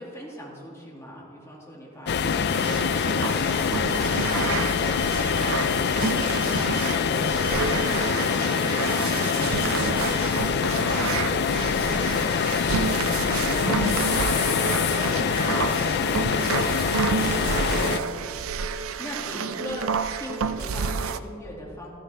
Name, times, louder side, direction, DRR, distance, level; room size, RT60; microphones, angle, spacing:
voice 1, 0.0-6.8 18.6-19.9 20.1-21.9, equal, 15° left, -4 dB, 2.4 m, -42 dB
sound 1, 2.1-18.0, left 6 dB, 55° left, 0.4 m, -24 dB
sound 2, 2.5-21.2, right 5 dB, 80° right, 0.5 m, -30 dB
voice 2, 7.1-14.4 14.7-17.0 17.3-17.9, equal, 30° left, -6 dB, 1.7 m, -42 dB
13.5 x 13.0 x 3.4 m, 2.6 s
head